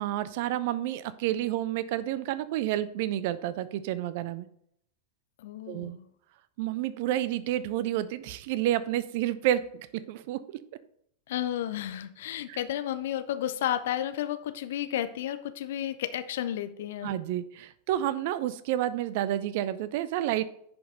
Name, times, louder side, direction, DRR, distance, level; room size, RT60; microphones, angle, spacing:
voice 1, 0.0-4.5 5.7-6.0 6.6-10.4 12.5-12.6 17.0-20.4, right 13 dB, 50° right, 15 dB, 0.5 m, -30 dB
voice 2, 5.4-6.1 11.3-17.1, left 11 dB, 55° left, 12 dB, 0.6 m, -32 dB
10.0 x 5.3 x 4.0 m, 0.70 s
figure-of-eight pair, 90°, 0 cm